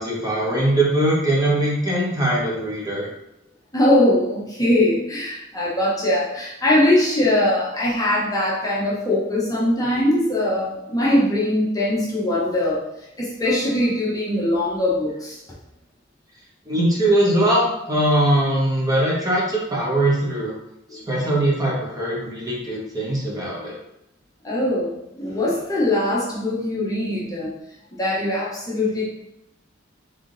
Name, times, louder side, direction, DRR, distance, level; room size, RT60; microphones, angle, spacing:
voice 1, 0.0-3.1 16.7-20.5 20.9-23.8, right 1 dB, 20° right, -5 dB, 1.2 m, -21 dB
voice 2, 3.7-12.9 13.2-15.4 20.9-21.0 24.4-27.5 28.0-29.0, left 1 dB, 20° left, -6 dB, 0.9 m, -21 dB
3.6 x 3.6 x 3.9 m, 0.85 s
head